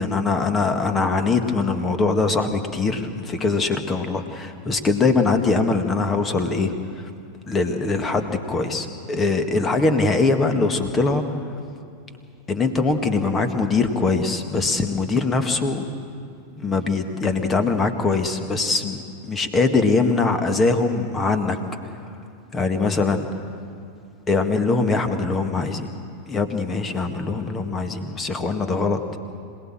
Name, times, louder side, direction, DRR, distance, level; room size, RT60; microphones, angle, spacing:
voice 1, 0.0-7.1 7.5-11.4 12.5-15.9 16.6-21.6 22.5-23.3 24.3-25.9 26.3-29.2, left 3 dB, 20° left, 7 dB, 1.8 m, -22 dB
26.5 x 18.0 x 7.6 m, 2.6 s
figure-of-eight pair, 90°, 0 cm